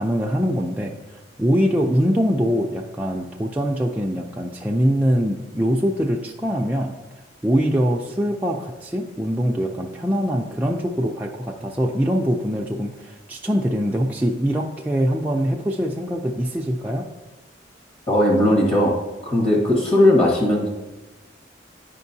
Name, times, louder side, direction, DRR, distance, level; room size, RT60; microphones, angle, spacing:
voice 1, 0.0-7.0 7.4-17.1, equal, 10° right, -2 dB, 0.4 m, -23 dB
voice 2, 18.1-18.9 19.2-20.7, left 1 dB, 35° left, -3 dB, 1.4 m, -17 dB
9.4 x 5.1 x 2.7 m, 1.1 s
head